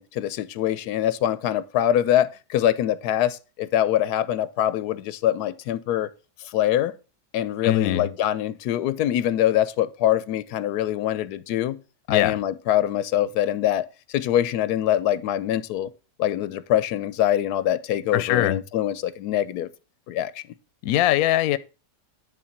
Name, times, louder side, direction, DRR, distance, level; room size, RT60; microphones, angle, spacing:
voice 1, 0.0-6.1 6.4-6.9 7.3-11.8 12.1-13.9 14.1-15.9 16.2-19.7 20.1-20.4, left 11 dB, 90° left, 1.2 m, -24 dB
voice 2, 7.6-8.1 12.1-12.3 18.1-18.6 20.8-21.6, left 13 dB, 70° left, 1.0 m, -21 dB
10.0 x 3.7 x 7.1 m
omnidirectional pair, 1.7 m